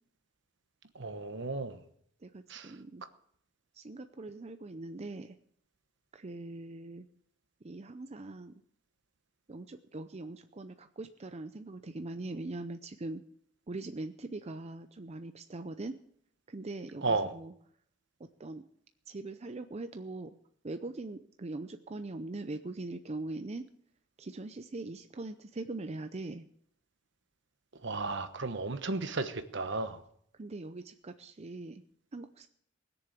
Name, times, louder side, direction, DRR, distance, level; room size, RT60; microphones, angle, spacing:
voice 1, 0.9-1.8 2.5-2.7 17.0-17.3 27.8-30.0, right 3 dB, 65° right, 10 dB, 1.2 m, -34 dB
voice 2, 2.2-3.0 3.7-5.4 6.1-7.1 7.6-8.5 9.5-13.2 13.7-16.0 16.5-17.5 18.2-18.6 19.1-20.4 20.6-23.7 24.2-26.5 30.4-31.8 32.1-32.5, right 2 dB, 35° right, 9 dB, 0.6 m, -41 dB
19.5 x 7.0 x 8.3 m, 0.67 s
head